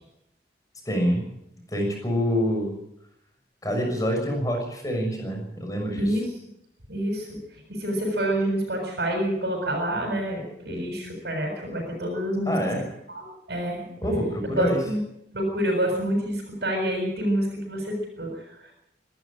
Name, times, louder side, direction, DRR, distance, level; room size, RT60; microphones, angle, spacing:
voice 1, 0.8-1.2 1.7-2.8 3.6-6.2 12.4-12.9 14.0-14.8, equal, 20° left, 2 dB, 6.6 m, -26 dB
voice 2, 5.9-6.2 6.9-7.3 7.7-12.5 13.1-13.9 14.6-15.0 15.3-18.4, right 1 dB, 65° right, 1 dB, 6.8 m, -27 dB
24.5 x 13.0 x 8.9 m, 0.80 s
head